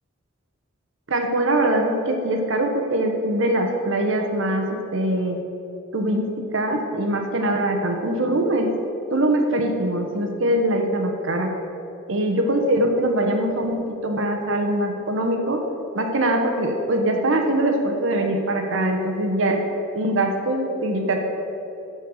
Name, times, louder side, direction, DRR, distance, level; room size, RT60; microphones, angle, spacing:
voice 1, 1.1-5.4 5.9-8.7 9.1-11.5 12.1-15.6 15.9-19.6 19.9-21.2, right 1 dB, 70° right, 4 dB, 1.1 m, -22 dB
13.0 x 4.5 x 6.3 m, 2.9 s
head